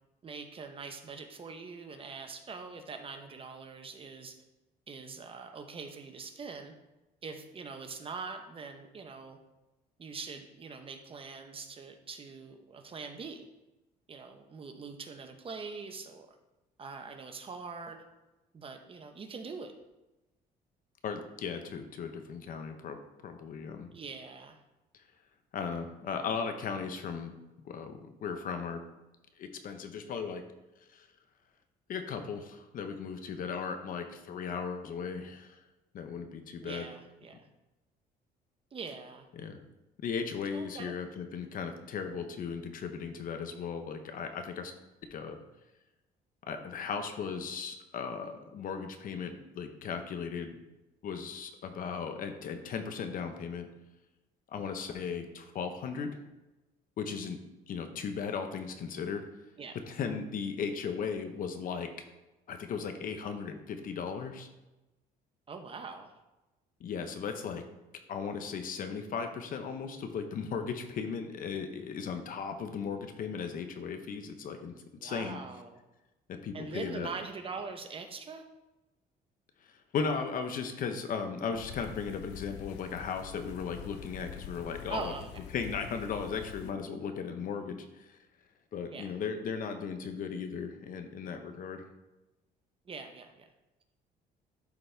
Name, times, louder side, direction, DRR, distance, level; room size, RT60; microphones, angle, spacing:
voice 1, 0.2-4.4 4.9-6.7 7.2-9.4 10.0-13.5 14.1-16.3 16.8-18.0 18.5-19.7 23.9-24.6 36.6-37.5 38.7-39.3 40.5-40.9 59.6-59.8 65.5-66.1 75.0-75.8 76.5-78.4 84.9-85.3 88.9-89.1 92.9-93.5, right 4 dB, 35° right, 6 dB, 0.9 m, -43 dB
voice 2, 21.0-23.0 23.2-23.9 25.5-27.3 27.6-28.8 29.4-30.4 30.9-31.1 31.9-35.6 35.9-36.8 39.3-39.6 40.0-44.7 45.1-45.4 46.5-50.5 51.0-53.7 54.5-56.1 57.0-57.4 57.7-59.2 59.9-61.9 62.5-64.5 66.8-67.6 68.1-74.7 75.0-75.4 76.4-77.1 79.6-85.1 85.5-88.2 88.7-91.9, left 6 dB, 55° left, 7 dB, 0.9 m, -37 dB
sound 1, 81.5-86.7, left 9 dB, 90° left, 0.5 m, -46 dB
11.5 x 4.1 x 3.4 m, 1.0 s
cardioid pair, 110°, 17 cm